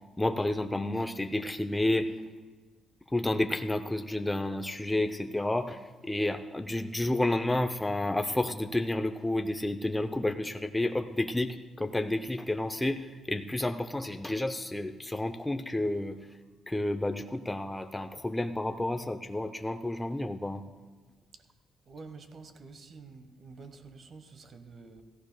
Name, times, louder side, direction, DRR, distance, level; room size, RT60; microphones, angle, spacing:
voice 1, 0.2-2.1 3.1-16.2 16.7-20.6, left 1 dB, 10° left, 0.6 m, -30 dB
voice 2, 21.9-25.0, right 4 dB, 50° right, 1.2 m, -48 dB
17.0 x 15.0 x 2.2 m
cardioid pair, 90°, 0 cm